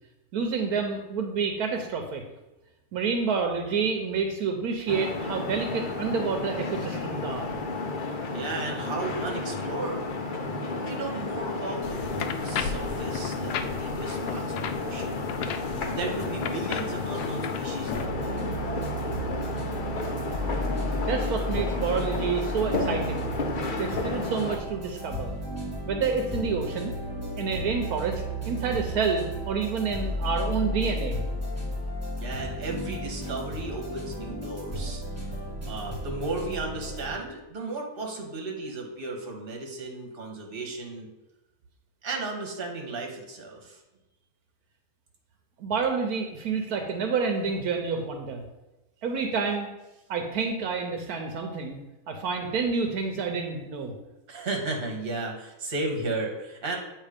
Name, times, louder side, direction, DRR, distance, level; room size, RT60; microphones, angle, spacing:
voice 1, 0.3-2.2 2.9-7.5 21.0-23.3 23.8-25.3 25.9-26.9 27.4-31.2 45.6-48.4 49.0-49.7 50.1-51.8 52.1-53.9, right 5 dB, 75° right, 4 dB, 1.2 m, -28 dB
sound 1, 4.9-24.6, left 3 dB, 60° left, 0.5 m, -32 dB
voice 2, 8.3-10.1 10.7-15.2 15.9-18.5 32.2-35.0 35.7-41.1 42.0-43.8 54.3-56.8, right 2 dB, 40° right, 2 dB, 1.3 m, -34 dB
sound 2, 11.8-18.1, left 7 dB, 90° left, 1.1 m, -34 dB
sound 3, 17.9-37.1, equal, 10° right, 1.4 m, -33 dB
8.4 x 3.1 x 5.0 m, 1.0 s
omnidirectional pair, 1.7 m